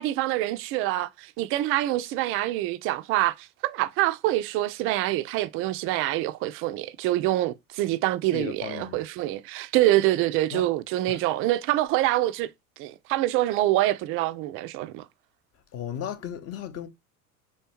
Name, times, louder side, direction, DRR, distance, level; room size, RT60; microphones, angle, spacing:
voice 1, 0.0-12.5 12.8-15.0, right 15 dB, 30° right, 0.4 m, -25 dB
voice 2, 8.3-9.0 10.5-10.7 11.1-11.3 15.7-16.9, left 9 dB, 35° left, 0.7 m, -35 dB
4.2 x 3.2 x 2.9 m
figure-of-eight pair, 65°, 44 cm